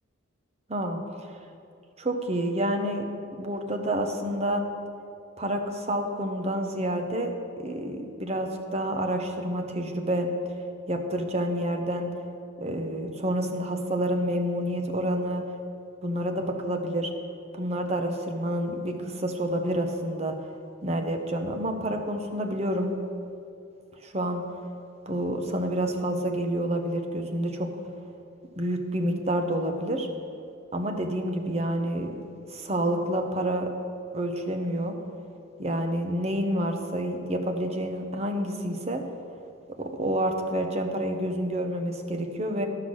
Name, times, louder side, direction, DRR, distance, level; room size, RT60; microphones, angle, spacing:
voice 1, 0.7-1.3 2.0-3.1 3.4-4.7 5.4-7.3 7.6-10.3 10.9-12.1 12.6-15.4 16.0-17.1 17.5-20.4 20.8-22.9 24.0-24.4 25.1-27.7 28.6-30.1 30.7-32.1 32.5-33.7 34.1-35.0 35.6-39.0 39.8-42.7, right 1 dB, 30° right, 4 dB, 0.8 m, -28 dB
13.0 x 5.8 x 6.2 m, 2.7 s
head